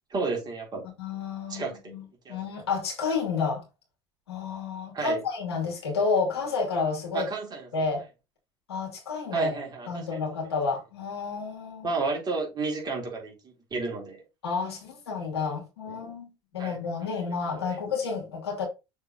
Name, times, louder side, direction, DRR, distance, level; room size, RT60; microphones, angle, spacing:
voice 1, 0.1-0.8 1.5-1.9 2.3-2.4 4.9-5.2 7.1-7.7 9.3-10.4 11.8-14.2 16.6-16.8 17.5-17.8, right 3 dB, 30° right, 3.7 m, -32 dB
voice 2, 1.0-3.6 4.3-7.3 7.7-8.0 8.7-9.5 9.9-11.9 14.4-18.7, left 4 dB, 80° left, 2.8 m, -30 dB
6.6 x 4.5 x 3.9 m
figure-of-eight pair, 70°, 13 cm